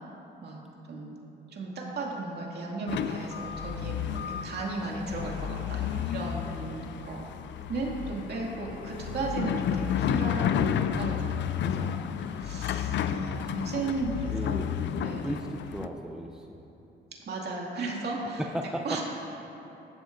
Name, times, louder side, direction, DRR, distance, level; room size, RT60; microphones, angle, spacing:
voice 1, 1.5-7.3 7.7-11.9 12.2-14.7 15.0-15.4 17.3-18.4 18.8-19.0, right 3 dB, 55° right, -3 dB, 2.3 m, -35 dB
sound 1, 2.9-15.9, left 9 dB, 65° left, 0.4 m, -31 dB
voice 2, 14.3-14.7 15.2-16.5 18.4-19.0, equal, 5° right, 2 dB, 0.6 m, -35 dB
14.5 x 11.5 x 2.6 m, 2.9 s
cardioid pair, 90°, 20 cm